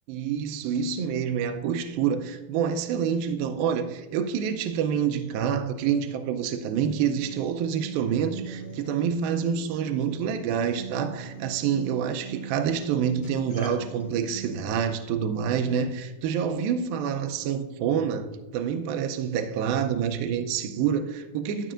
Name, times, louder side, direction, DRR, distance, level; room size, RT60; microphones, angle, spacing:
voice 1, 0.1-21.7, right 7 dB, 85° right, 2.2 m, -27 dB
Acoustic guitar, 6.7-14.7, right 6 dB, 20° left, 1.2 m, -42 dB
12.5 x 12.0 x 2.5 m
omnidirectional pair, 4.7 m